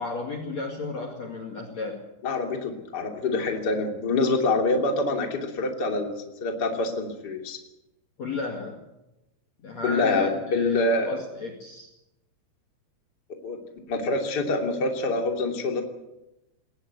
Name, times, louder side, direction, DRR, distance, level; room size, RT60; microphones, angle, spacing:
voice 1, 0.0-2.0 8.2-8.8 9.6-11.9, left 3 dB, 45° left, 1 dB, 2.8 m, -33 dB
voice 2, 2.2-6.1 6.4-7.6 9.8-11.2 13.4-13.6 13.9-15.8, left 3 dB, 25° left, 2 dB, 2.8 m, -26 dB
20.0 x 19.0 x 8.2 m, 0.92 s
omnidirectional pair, 5.1 m